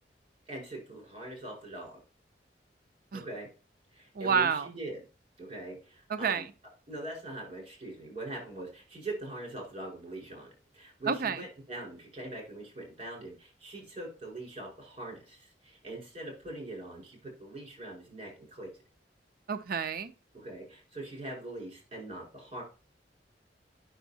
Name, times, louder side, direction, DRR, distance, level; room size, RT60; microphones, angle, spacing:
voice 1, 0.5-2.0 3.1-3.5 3.9-5.0 5.4-6.4 6.9-18.7 20.3-22.6, right 1 dB, 35° right, 4.7 m, -42 dB
voice 2, 4.2-4.7 6.1-6.4 11.1-11.4 19.5-20.1, right 6 dB, 55° right, 0.5 m, -29 dB
9.1 x 6.1 x 2.8 m
head